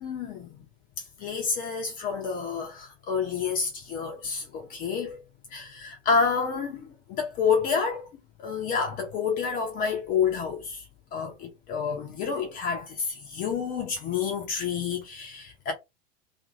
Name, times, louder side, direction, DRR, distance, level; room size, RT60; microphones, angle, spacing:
voice 1, 0.0-0.6 1.2-5.2 5.5-8.1 8.4-10.8 11.1-15.7, left 6 dB, 25° left, 0.6 m, -29 dB
2.9 x 2.5 x 2.6 m
figure-of-eight pair, 95°, 38 cm